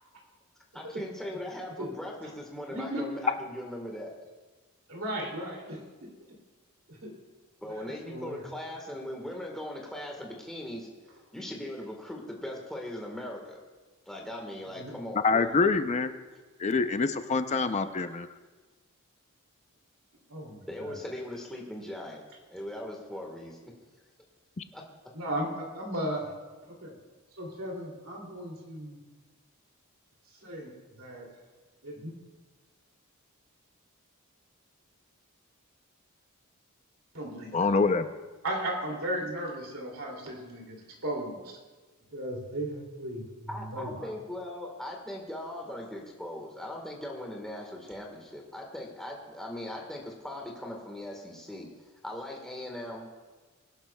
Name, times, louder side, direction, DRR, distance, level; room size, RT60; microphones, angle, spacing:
voice 1, 0.7-4.1 7.6-10.9 11.3-13.6 14.1-15.6 20.7-22.2 22.5-23.7 24.7-24.9 43.5-51.7 52.0-53.1, left 1 dB, ahead, -1 dB, 1.4 m, -39 dB
voice 2, 2.7-3.0 4.9-6.1 7.0-7.1 7.8-8.4 14.8-14.9 20.3-20.9 25.1-26.3 26.7-26.9 27.4-29.0 30.4-30.7 31.0-31.2 31.8-32.1 37.1-37.7 38.4-41.6 42.1-43.2 43.6-44.1, right 1 dB, 70° right, -1 dB, 2.6 m, -36 dB
voice 3, 15.2-16.1 16.6-18.3 37.5-38.1, left 4 dB, 30° left, 10 dB, 0.5 m, -25 dB
21.5 x 11.5 x 2.3 m, 1.3 s
head